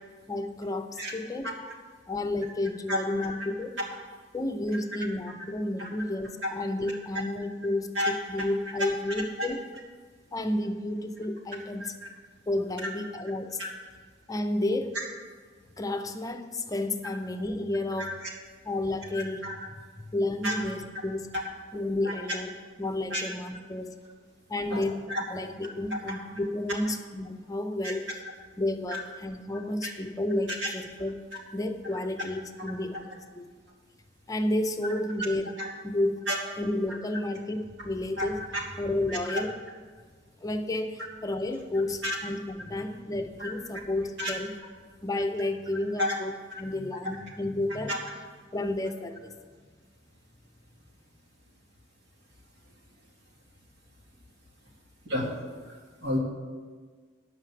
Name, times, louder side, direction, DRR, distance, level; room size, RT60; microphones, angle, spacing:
voice 1, 0.3-1.5 2.1-3.8 4.3-9.6 10.3-11.9 12.5-13.6 14.3-15.0 15.8-18.2 18.7-19.5 20.0-21.3 21.7-24.0 24.5-25.0 25.3-28.0 28.6-31.1 31.5-33.5 34.3-35.5 35.8-36.2 36.6-38.4 38.8-39.6 40.4-44.5 45.0-46.3 46.6-47.9 48.5-49.3, left 1 dB, 20° left, 6 dB, 0.6 m, -31 dB
voice 2, 2.9-3.4 4.7-4.8 5.3-5.4 5.8-5.9 7.9-8.1 9.4-9.5 11.8-11.9 12.8-12.9 13.6-13.7 14.9-15.0 18.0-18.3 19.1-19.6 20.4-20.6 21.3-21.4 22.0-22.1 23.1-23.2 24.7-25.2 25.6-25.7 26.1-26.2 27.8-27.9 28.9-29.0 29.8-29.9 30.6-30.7 32.2-32.3 35.6-35.7 36.3-36.4 38.2-38.3 38.5-38.6 39.1-39.4 42.0-42.2 43.4-43.5 44.2-44.3 46.0-46.1 46.5-46.6 47.9-48.0 55.0-56.2, left 1 dB, 90° right, -2 dB, 2.4 m, -31 dB
11.0 x 5.8 x 7.4 m, 1.5 s
head